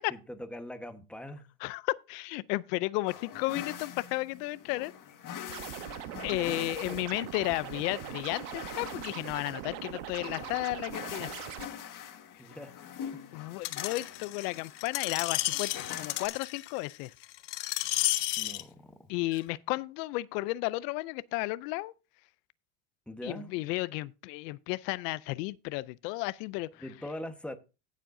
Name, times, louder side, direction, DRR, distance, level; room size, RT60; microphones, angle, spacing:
voice 1, 0.0-1.5 6.3-7.0 12.4-12.8 13.1-13.3 18.4-19.1 23.1-23.6 26.8-27.6, left 1 dB, ahead, 1.2 m, -43 dB
voice 2, 1.6-4.9 6.2-11.3 13.3-17.1 19.1-21.9 23.2-26.8, left 20 dB, 90° left, 0.6 m, -33 dB
sound 1, 3.1-16.3, left 9 dB, 40° left, 1.6 m, -44 dB
Scratching (performance technique), 5.5-11.7, right 15 dB, 75° right, 1.1 m, -41 dB
Screech, 13.6-18.6 19.3-19.4, left 18 dB, 65° left, 1.0 m, -32 dB
16.0 x 7.5 x 2.6 m
supercardioid pair, 120°, 47 cm